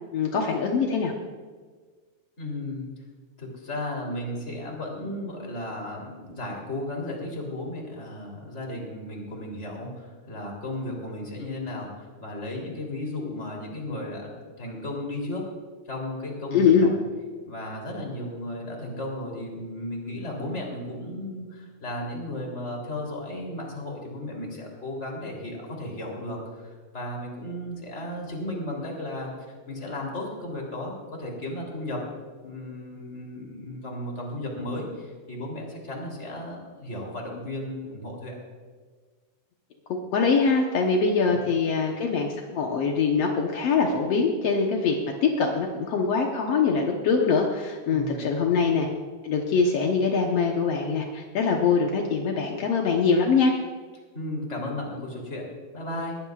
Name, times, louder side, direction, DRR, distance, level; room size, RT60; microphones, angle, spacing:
voice 1, 0.1-1.1 16.5-16.9 39.9-48.9 49.2-53.5, left 5 dB, 75° left, 1 dB, 1.4 m, -23 dB
voice 2, 2.4-2.9 3.4-15.5 15.9-16.9 17.5-29.3 29.7-32.0 32.4-38.4 47.9-48.2 54.1-56.2, left 1 dB, 20° left, -1 dB, 3.0 m, -34 dB
21.0 x 16.0 x 2.4 m, 1.5 s
omnidirectional pair, 4.3 m